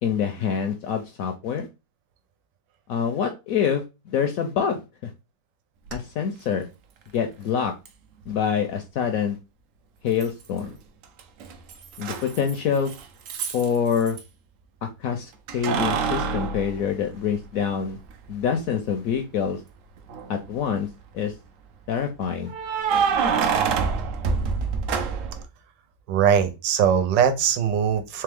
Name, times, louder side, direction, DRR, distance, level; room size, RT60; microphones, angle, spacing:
voice 1, 0.0-1.7 2.9-5.1 5.9-6.7 7.1-7.7 8.3-9.4 10.0-10.7 12.0-12.9 13.5-14.2 14.8-18.0 18.3-19.6 20.3-20.9 21.1-21.3 21.9-22.5, left 7 dB, 75° left, 0.8 m, -26 dB
Keys jangling, 5.9-6.0 7.9-8.0 10.2-10.7 11.0-14.2 15.5-17.6 18.1-18.2 20.0-20.5 22.5-25.4, right 5 dB, 70° right, 0.8 m, -26 dB
voice 2, 26.1-28.2, right 8 dB, 85° right, 1.4 m, -21 dB
3.4 x 3.3 x 3.4 m
omnidirectional pair, 1.9 m